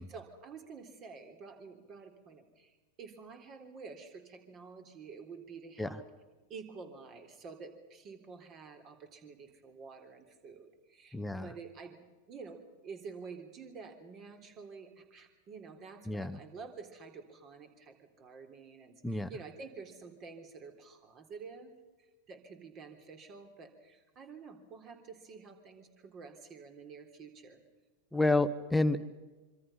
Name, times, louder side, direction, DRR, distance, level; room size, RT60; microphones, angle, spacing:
voice 1, 0.0-2.7 3.0-6.1 6.5-21.7 22.0-27.6 28.1-28.4, right 5 dB, 30° right, 6 dB, 3.5 m, -49 dB
voice 2, 11.1-11.5 16.1-16.4 19.0-19.3 28.1-29.0, left 2 dB, 5° left, 11 dB, 1.2 m, -29 dB
26.0 x 25.5 x 5.7 m, 1.2 s
figure-of-eight pair, 90°, 0 cm